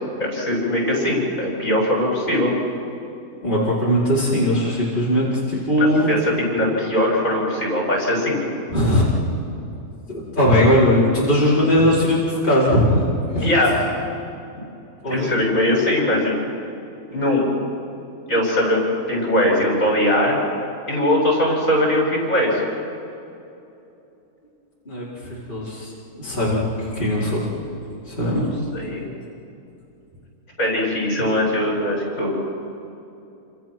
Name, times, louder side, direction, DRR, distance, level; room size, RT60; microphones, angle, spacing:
voice 1, 0.2-2.5 5.8-8.4 13.4-13.9 15.1-16.4 17.1-17.5 18.3-20.4 20.9-22.6 28.7-29.0 30.6-32.4, left 1 dB, 50° left, -2 dB, 6.8 m, -20 dB
voice 2, 3.4-6.1 8.7-9.0 10.1-13.5 15.0-15.3 24.8-25.9 26.2-27.5 28.1-28.5, equal, 30° left, -8 dB, 5.0 m, -19 dB
28.5 x 27.0 x 6.2 m, 2.8 s
omnidirectional pair, 1.7 m